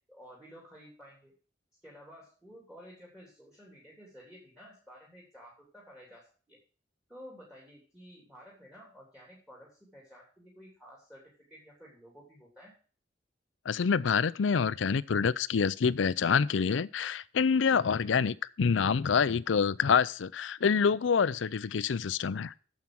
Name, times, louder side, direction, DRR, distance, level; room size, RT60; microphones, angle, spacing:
voice 1, 0.1-1.3 1.8-6.6 7.1-12.7, equal, 5° right, 3.1 m, -53 dB
voice 2, 13.7-22.5, left 6 dB, 90° left, 0.5 m, -27 dB
9.2 x 7.4 x 6.1 m
head